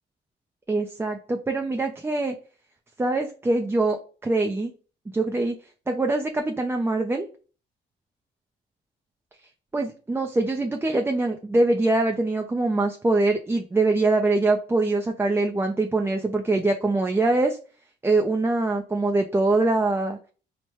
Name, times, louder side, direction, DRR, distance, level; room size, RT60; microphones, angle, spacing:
voice 1, 0.7-2.4 3.0-4.7 5.1-5.6 5.9-7.3 9.7-17.6 18.0-20.2, right 2 dB, 10° right, 4 dB, 0.4 m, -23 dB
4.3 x 2.1 x 3.1 m, 0.38 s
cardioid pair, 90°, 20 cm